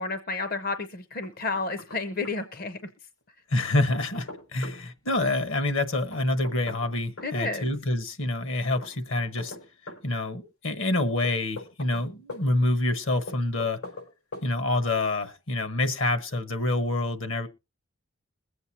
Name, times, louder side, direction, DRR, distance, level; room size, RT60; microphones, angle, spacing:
voice 1, 0.0-2.8 7.2-7.7, left 3 dB, 45° left, 0.7 m, -31 dB
Knock, 1.2-2.0 2.2-2.3 3.6-4.8 6.1-7.3 8.8-10.0 11.2-12.4 13.3-14.1 14.3-14.5, left 2 dB, 90° left, 5.3 m, -41 dB
voice 2, 3.5-9.5 10.0-13.8 14.4-17.5, left 2 dB, 65° left, 1.2 m, -27 dB
21.5 x 8.0 x 2.8 m
head